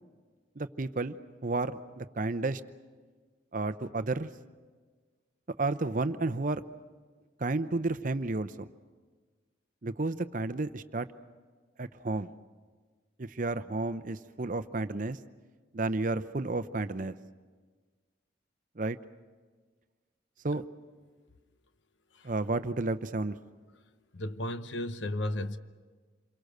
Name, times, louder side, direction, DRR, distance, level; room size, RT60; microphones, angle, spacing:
voice 1, 0.6-1.2 1.4-2.6 3.5-4.3 5.6-6.6 7.4-8.7 9.8-11.1 11.8-12.3 13.2-15.2 15.7-17.2 18.8-19.0 20.4-20.6 22.2-23.4, right 2 dB, 45° right, 0.7 m, -31 dB
voice 2, 24.1-25.6, left 1 dB, 70° left, 0.9 m, -34 dB
28.0 x 23.0 x 6.6 m
head